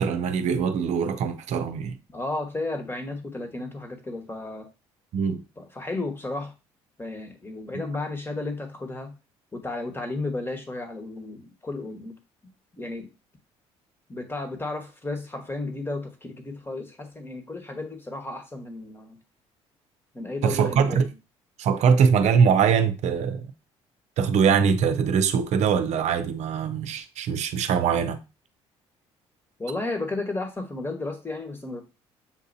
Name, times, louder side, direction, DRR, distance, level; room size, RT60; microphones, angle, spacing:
voice 1, 0.0-2.0 5.1-5.4 20.4-21.1 21.6-23.5 24.2-28.2, right 6 dB, 65° right, 0.6 m, -22 dB
voice 2, 2.1-4.7 5.6-6.5 7.0-9.1 9.5-12.1 12.8-13.1 14.1-19.2 20.1-21.1 29.6-31.8, left 2 dB, 20° left, 1.2 m, -33 dB
7.2 x 2.7 x 2.7 m
supercardioid pair, 70°, 13 cm